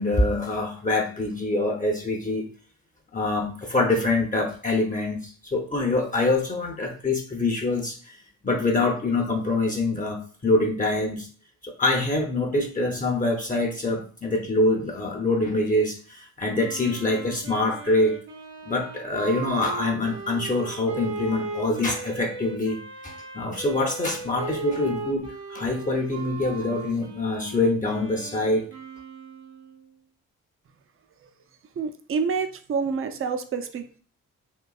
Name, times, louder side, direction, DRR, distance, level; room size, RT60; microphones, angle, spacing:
voice 1, 0.0-2.5 3.1-8.2 8.4-11.3 11.6-18.2 18.7-28.7, left 2 dB, 25° left, 1 dB, 0.7 m, -25 dB
Wind instrument woodwind instrument, 16.6-30.0, right 4 dB, 80° right, 1.1 m, -37 dB
voice 2, 31.8-34.0, right 5 dB, 40° right, 8 dB, 0.5 m, -28 dB
3.8 x 2.5 x 2.3 m, 0.41 s
supercardioid pair, 50°, 35 cm